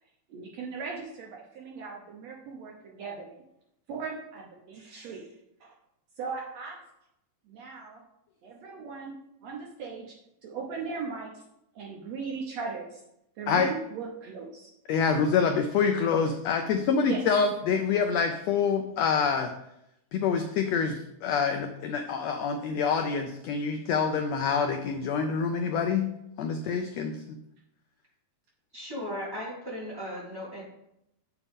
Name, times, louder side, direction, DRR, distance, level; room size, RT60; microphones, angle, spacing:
voice 1, 0.3-3.3 3.9-5.2 5.6-5.7 6.2-6.8 7.5-8.0 8.4-9.2 9.4-10.1 10.4-11.4 11.7-13.0 13.4-14.7 17.0-17.2, right 5 dB, 70° right, -1 dB, 1.8 m, -38 dB
voice 2, 14.9-19.5 20.1-26.1 26.4-27.2, left 6 dB, 80° left, 6 dB, 1.5 m, -26 dB
voice 3, 28.7-30.6, equal, 5° right, -7 dB, 3.0 m, -36 dB
7.9 x 7.0 x 3.6 m, 0.81 s
omnidirectional pair, 3.6 m